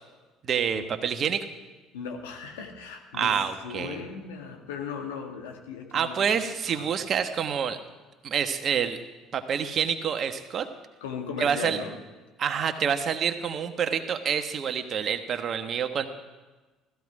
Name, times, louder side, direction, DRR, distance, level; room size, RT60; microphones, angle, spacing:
voice 1, 0.4-1.5 3.2-4.0 5.9-7.8 8.2-9.0 9.3-10.7 11.4-11.8 12.4-16.1, right 7 dB, 50° right, 8 dB, 1.3 m, -27 dB
voice 2, 1.9-6.9 11.0-12.0, left 6 dB, 80° left, 3 dB, 1.8 m, -38 dB
16.0 x 14.0 x 4.9 m, 1.2 s
hypercardioid pair, 60°, 0 cm